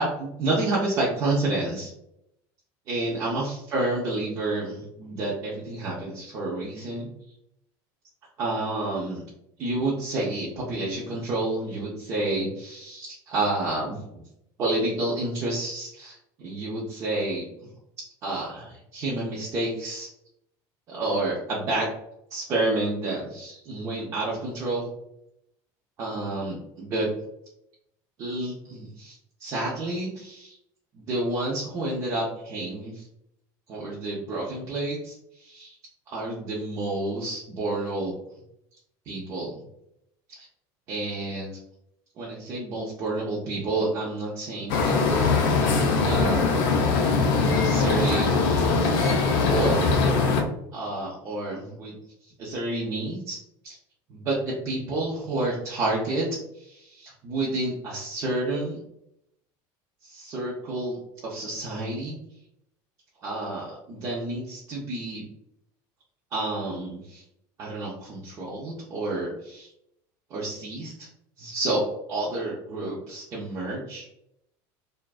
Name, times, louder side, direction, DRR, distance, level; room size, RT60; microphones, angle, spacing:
voice 1, 0.0-1.9 2.9-7.1 8.4-9.2 9.6-14.2 14.6-17.5 18.2-20.1 20.9-21.9 22.3-24.9 26.0-27.1 28.2-30.6 30.9-33.1 33.7-35.8 36.1-38.1 39.1-39.6 40.3-40.5 40.9-41.5 42.2-48.6 49.4-49.8 50.7-51.9 52.2-53.4 53.6-53.8 54.1-58.8 60.0-62.2 63.2-65.3 66.3-67.2 67.6-69.7 70.3-71.1 71.4-74.1, right 2 dB, 30° right, -6 dB, 0.4 m, -30 dB
sound 1, 44.7-50.4, left 4 dB, 65° left, 0.5 m, -21 dB
2.5 x 2.2 x 2.3 m, 0.79 s
cardioid pair, 175°, 10 cm